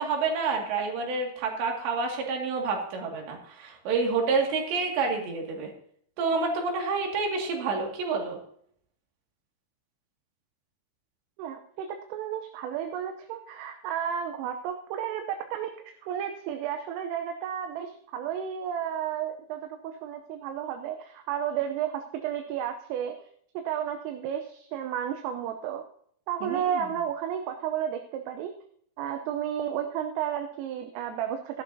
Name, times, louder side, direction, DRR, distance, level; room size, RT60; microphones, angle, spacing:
voice 1, 0.0-5.7 6.2-8.4 26.4-26.9, right 4 dB, 60° right, 1 dB, 4.2 m, -28 dB
voice 2, 11.4-15.7 16.0-23.2 23.5-25.8 26.3-28.5 29.0-31.6, right 9 dB, 80° right, 6 dB, 3.3 m, -32 dB
17.5 x 12.0 x 2.8 m, 0.63 s
omnidirectional pair, 6.0 m